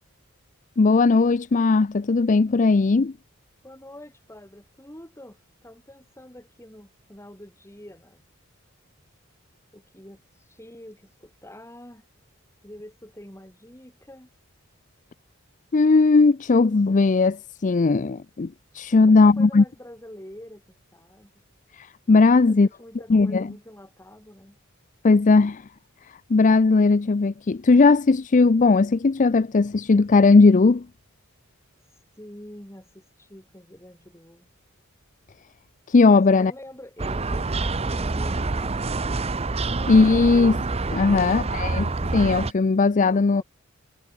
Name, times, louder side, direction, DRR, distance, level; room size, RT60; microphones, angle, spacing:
voice 1, 0.8-3.1 15.7-18.5 18.7-19.6 21.8-22.7 23.1-23.4 25.0-25.6 26.3-30.8 35.9-36.5 39.9-40.6 40.9-43.4, left 3 dB, 35° left, 0.5 m, -18 dB
voice 2, 3.6-8.2 9.7-12.1 12.6-14.3 18.9-21.3 22.3-24.6 32.2-34.5 36.1-39.3 41.0-41.8 43.1-43.4, left 1 dB, 15° left, 7.2 m, -46 dB
sound 1, 37.0-42.5, right 3 dB, 30° right, 0.8 m, -27 dB
head